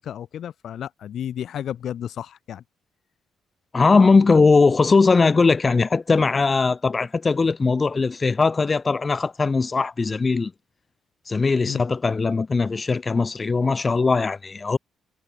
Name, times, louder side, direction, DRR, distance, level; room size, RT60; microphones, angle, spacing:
voice 1, 0.0-2.6 11.7-11.8, left 10 dB, 65° left, 5.9 m, -32 dB
voice 2, 3.7-10.5 11.3-14.8, left 4 dB, 30° left, 7.6 m, -19 dB
cardioid pair, 90°, 0 cm